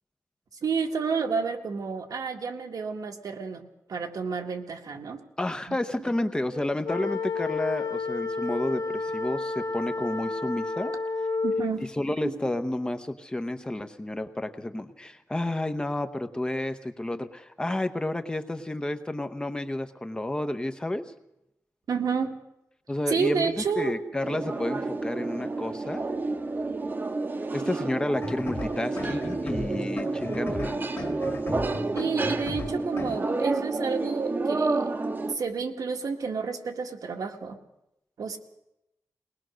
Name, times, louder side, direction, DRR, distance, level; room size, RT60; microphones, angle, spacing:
voice 1, 0.6-5.2 5.7-5.8 11.4-11.8 12.2-12.5 21.9-22.3 23.1-24.0 31.9-34.9 35.3-37.6 38.2-38.4, right 5 dB, 80° right, 3 dB, 1.8 m, -30 dB
voice 2, 5.4-10.9 12.0-21.1 22.9-26.1 27.5-30.9, left 1 dB, 15° left, 8 dB, 0.8 m, -31 dB
sound 1, 6.8-11.8, left 4 dB, 90° left, 1.2 m, -30 dB
sound 2, 24.2-35.4, right 3 dB, 30° right, 1.0 m, -30 dB
sound 3, 28.1-33.2, left 2 dB, 40° left, 2.2 m, -36 dB
21.5 x 19.5 x 6.3 m, 0.87 s
wide cardioid pair, 170°, 6 cm